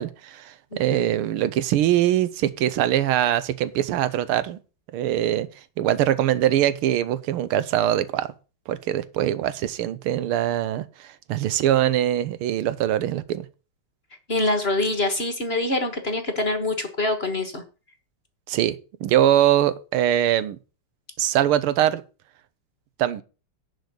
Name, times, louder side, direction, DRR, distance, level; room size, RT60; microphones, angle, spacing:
voice 1, 0.0-4.6 4.9-5.5 5.8-8.3 8.7-13.5 18.5-20.6 21.2-22.0 23.0-23.2, right 12 dB, 85° right, 1.7 m, -22 dB
voice 2, 14.3-17.6, left 2 dB, 30° left, 1.4 m, -25 dB
11.0 x 4.9 x 8.0 m
omnidirectional pair, 2.4 m